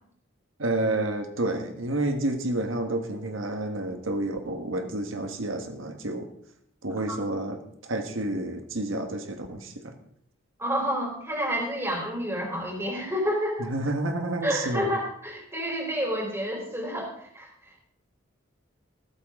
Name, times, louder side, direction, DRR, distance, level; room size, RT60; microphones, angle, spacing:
voice 1, 0.6-6.3 6.8-9.9 13.6-14.9, right 1 dB, 90° right, 5 dB, 1.5 m, -30 dB
voice 2, 10.6-13.7 14.4-17.8, equal, 15° right, -1 dB, 3.9 m, -29 dB
14.5 x 13.5 x 3.7 m, 0.67 s
head